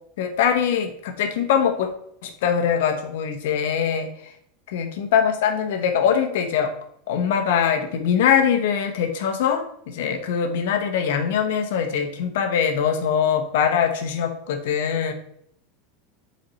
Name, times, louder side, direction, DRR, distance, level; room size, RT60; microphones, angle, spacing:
voice 1, 0.2-1.9 2.2-4.1 4.7-6.7 7.1-15.1, left 7 dB, 80° left, 6 dB, 1.0 m, -22 dB
7.3 x 4.3 x 4.1 m, 0.69 s
supercardioid pair, 145°, 0 cm